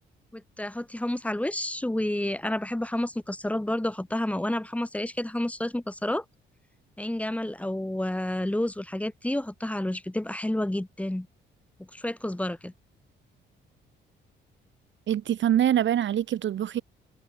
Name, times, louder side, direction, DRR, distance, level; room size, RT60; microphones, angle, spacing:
voice 1, 0.3-6.2 7.0-11.3 11.8-12.7, left 1 dB, 5° left, 2.8 m, -30 dB
voice 2, 15.1-16.8, right 10 dB, 70° right, 3.5 m, -24 dB
cardioid pair, 90°, 20 cm